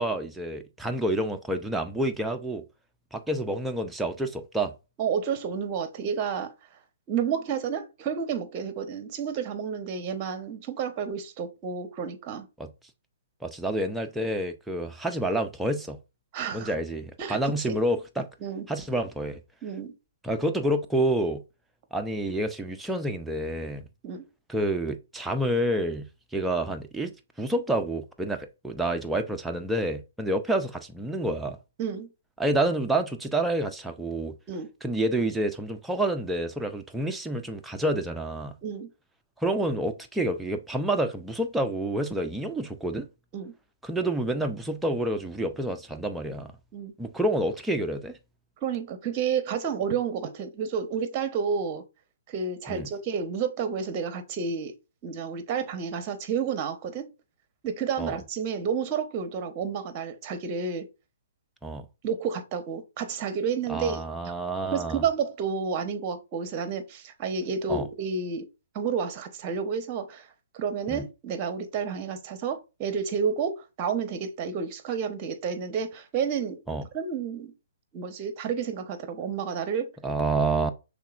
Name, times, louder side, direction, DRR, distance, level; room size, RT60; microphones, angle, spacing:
voice 1, 0.0-2.6 3.1-4.7 12.6-12.7 13.4-16.0 16.5-18.3 18.7-19.4 20.2-21.4 21.9-23.8 24.5-26.1 26.3-31.6 32.4-34.3 34.8-38.5 39.4-43.1 43.8-46.5 47.0-48.2 52.7-52.9 58.0-58.1 61.6-61.9 63.7-65.0 67.7-67.9 70.9-71.1 76.7-76.8 80.0-80.7, right 1 dB, 5° right, 0.5 m, -28 dB
voice 2, 5.0-6.5 7.1-12.5 16.3-16.7 17.2-17.8 18.4-18.6 19.6-19.9 24.0-24.2 31.8-32.1 34.5-34.7 38.6-38.9 43.3-43.5 46.7-46.9 48.6-51.8 52.3-54.7 55.0-57.1 57.6-60.9 62.0-64.0 64.7-68.4 68.7-70.3 70.5-76.6 76.9-77.5 77.9-79.9, right 6 dB, 35° right, 0.8 m, -30 dB
5.7 x 3.5 x 2.4 m
figure-of-eight pair, 125°, 0 cm